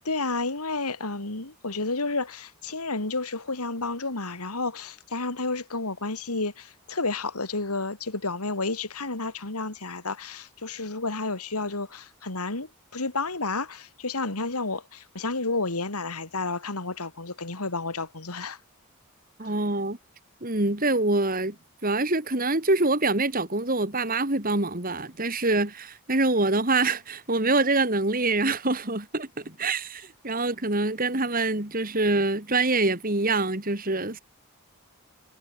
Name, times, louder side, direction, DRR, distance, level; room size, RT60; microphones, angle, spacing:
voice 1, 0.1-18.6, left 3 dB, 90° left, 3.2 m, -31 dB
voice 2, 19.4-20.0 20.4-21.6 21.8-34.2, right 2 dB, 40° right, 2.8 m, -25 dB
head